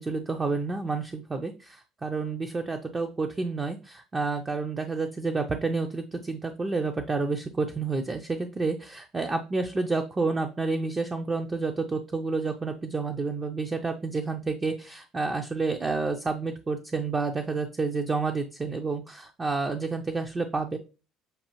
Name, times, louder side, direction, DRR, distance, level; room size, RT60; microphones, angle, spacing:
voice 1, 0.0-20.8, right 3 dB, 20° right, 5 dB, 0.4 m, -29 dB
6.6 x 2.4 x 2.9 m, 0.32 s
cardioid pair, 135°, 0 cm